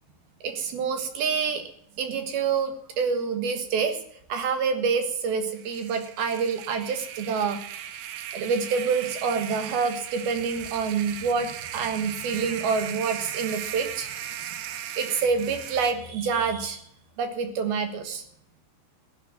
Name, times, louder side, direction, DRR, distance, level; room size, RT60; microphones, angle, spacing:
voice 1, 0.4-1.6 2.0-4.0 4.3-7.6 8.3-14.1 15.0-16.8 17.2-18.2, right 5 dB, 65° right, 7 dB, 2.8 m, -27 dB
sound 1, 5.5-16.0, right 10 dB, 85° right, 3.8 m, -37 dB
16.0 x 11.0 x 7.6 m, 0.68 s
omnidirectional pair, 5.6 m